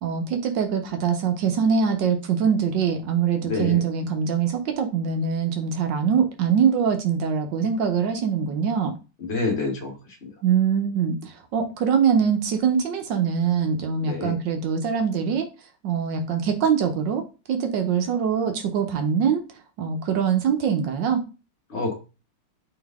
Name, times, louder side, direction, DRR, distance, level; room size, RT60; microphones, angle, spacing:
voice 1, 0.0-8.9 10.4-15.5 15.8-17.2 17.5-19.4 19.8-21.2, right 7 dB, 70° right, 5 dB, 1.3 m, -23 dB
voice 2, 3.5-3.8 9.3-9.9 14.0-14.4 21.7-21.9, left 3 dB, 40° left, 1 dB, 1.0 m, -27 dB
3.8 x 3.5 x 3.4 m, 0.31 s
omnidirectional pair, 2.2 m